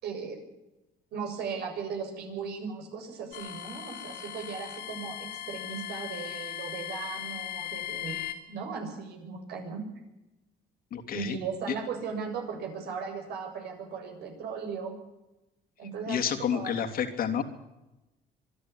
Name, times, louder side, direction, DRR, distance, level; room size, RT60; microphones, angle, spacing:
voice 1, 0.0-0.4 1.1-9.8 11.1-15.0 15.8-16.8, right 5 dB, 75° right, 3 dB, 7.4 m, -37 dB
sound 1, 3.3-8.3, left 11 dB, 75° left, 4.1 m, -38 dB
voice 2, 10.9-11.4 16.1-17.4, left 8 dB, 60° left, 6 dB, 3.1 m, -29 dB
25.5 x 12.0 x 10.0 m, 0.96 s
cardioid pair, 110°, 17 cm